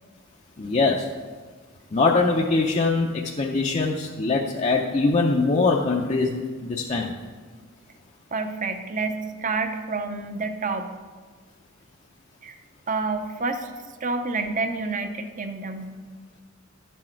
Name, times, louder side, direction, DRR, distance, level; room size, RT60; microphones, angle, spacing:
voice 1, 0.6-1.1 1.9-7.1, left 3 dB, 35° left, -1 dB, 0.6 m, -22 dB
voice 2, 8.3-10.9 12.4-12.6 12.9-13.7 14.0-15.9, right 3 dB, 40° right, 7 dB, 0.7 m, -28 dB
10.5 x 6.3 x 4.5 m, 1.5 s
head